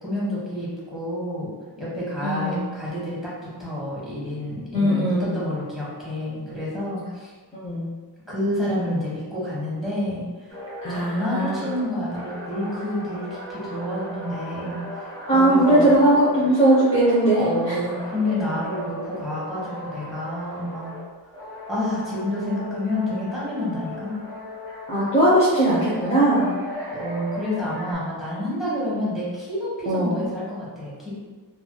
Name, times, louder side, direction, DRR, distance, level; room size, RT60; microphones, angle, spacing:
voice 1, 0.0-7.3 8.3-10.5 10.9-15.1 15.3-16.0 17.4-20.9 21.7-24.2 26.9-31.2, left 1 dB, ahead, -9 dB, 1.2 m, -29 dB
voice 2, 2.2-2.6 4.7-5.5 7.5-7.9 10.8-11.7 15.3-17.7 24.9-26.6 29.9-30.3, right 1 dB, 15° left, -9 dB, 0.7 m, -19 dB
sound 1, 10.5-21.1 21.3-25.3 25.8-27.9, equal, 30° right, 1.3 m, -37 dB
3.2 x 2.7 x 2.2 m, 1.4 s
wide cardioid pair, 110°, 40 cm